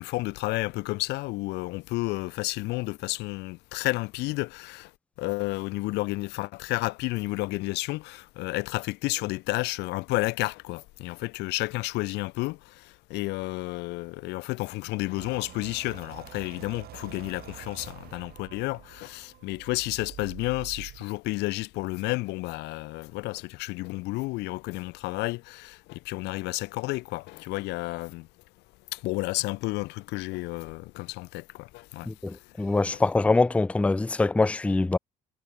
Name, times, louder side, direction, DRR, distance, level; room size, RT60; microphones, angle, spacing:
voice 1, 0.0-4.9 5.2-28.3 28.9-32.1 32.9-33.0, left 21 dB, 85° left, 0.6 m, -31 dB
sound 1, 15.1-21.0, right 13 dB, 70° right, 2.5 m, -46 dB
voice 2, 32.0-35.0, left 3 dB, 5° left, 0.4 m, -24 dB
cardioid pair, 110°, 17 cm